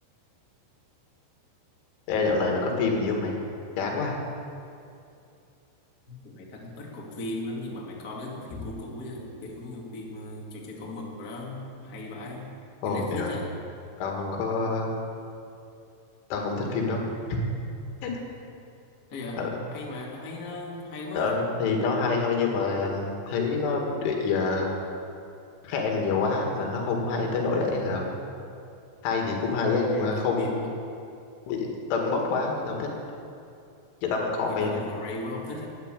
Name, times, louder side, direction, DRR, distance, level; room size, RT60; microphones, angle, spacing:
voice 1, 2.1-3.4 3.8-4.2 12.8-13.4 14.0-14.9 16.3-17.4 18.0-18.1 19.4-19.5 21.1-24.7 25.6-28.1 29.0-30.6 31.5-32.9 34.0-34.8, left 4 dB, 75° left, 0 dB, 4.3 m, -27 dB
voice 2, 6.1-12.5 12.8-13.5 19.1-21.4 29.9-30.6 34.5-35.7, left 2 dB, 45° left, -3 dB, 1.1 m, -37 dB
12.5 x 10.0 x 9.0 m, 2.5 s
omnidirectional pair, 5.6 m